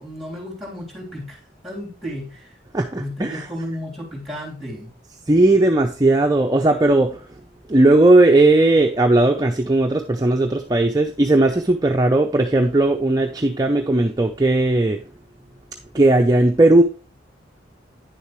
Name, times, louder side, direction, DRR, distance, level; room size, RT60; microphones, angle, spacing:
voice 1, 0.0-2.5 2.9-4.9, equal, ahead, -2 dB, 3.3 m, -33 dB
voice 2, 2.7-3.5 5.3-7.2 7.7-15.0 15.9-16.8, right 2 dB, 20° right, 3 dB, 0.6 m, -17 dB
9.6 x 7.0 x 3.1 m, 0.35 s
head